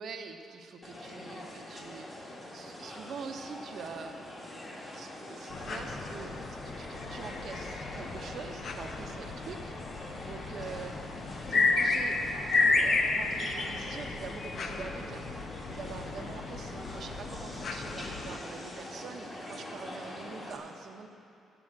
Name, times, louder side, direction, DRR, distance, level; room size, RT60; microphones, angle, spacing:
voice 1, 0.0-4.2 4.8-11.0 11.5-12.2 12.5-15.3 15.7-21.1, right 5 dB, 60° right, 5 dB, 1.0 m, -45 dB
sound 1, 0.8-20.6, left 1 dB, 30° left, 2.1 m, -44 dB
sound 2, 5.5-18.4, left 3 dB, 55° left, 0.8 m, -32 dB
9.2 x 7.0 x 8.7 m, 2.8 s
cardioid pair, 90°, 0 cm